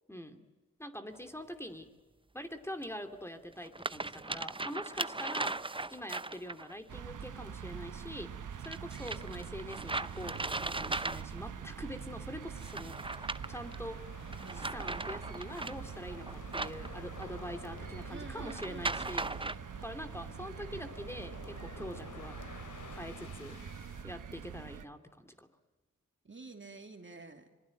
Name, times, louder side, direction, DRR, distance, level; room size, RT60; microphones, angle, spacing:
voice 1, 0.1-0.4 0.8-1.9 2.3-8.3 8.6-13.1 13.5-14.0 14.5-22.4 22.9-23.6 24.0-25.5, equal, 10° left, 6 dB, 2.7 m, -44 dB
sound 1, 1.1-1.2 2.8-2.9 3.5-6.7 8.6-11.6 12.6-13.8 14.3-17.4 18.5-19.6, right 2 dB, 15° right, 0.7 m, -38 dB
sound 2, 6.9-24.9, right 7 dB, 85° right, 1.1 m, -45 dB
sound 3, 12.8-24.0, left 5 dB, 80° left, 2.7 m, -51 dB
voice 2, 14.4-14.7 18.1-19.3 26.2-27.5, right 3 dB, 40° right, 5 dB, 2.9 m, -49 dB
26.0 x 20.5 x 9.0 m, 1.3 s
cardioid pair, 50°, 30 cm